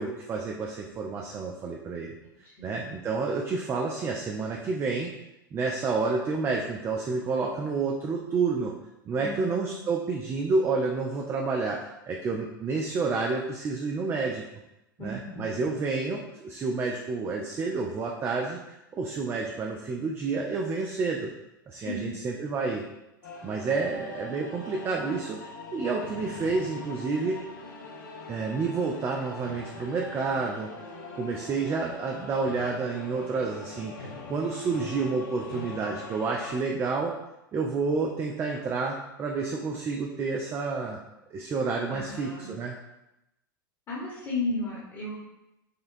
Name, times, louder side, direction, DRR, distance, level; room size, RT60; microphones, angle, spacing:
voice 1, 0.0-2.1 2.6-5.1 5.5-8.7 9.1-14.4 15.0-21.3 21.7-22.8 23.4-25.4 25.7-27.4 28.3-30.7 31.1-37.2 37.5-41.0 41.3-42.8, right 4 dB, 20° right, 0 dB, 0.3 m, -29 dB
voice 2, 2.4-2.8 9.2-9.7 15.0-15.6 21.8-22.1 41.9-42.5 43.9-45.2, left 2 dB, 30° left, -6 dB, 1.2 m, -34 dB
sound 1, 23.2-36.6, left 3 dB, 60° left, 0.7 m, -42 dB
5.1 x 2.2 x 2.6 m, 0.92 s
figure-of-eight pair, 90°, 11 cm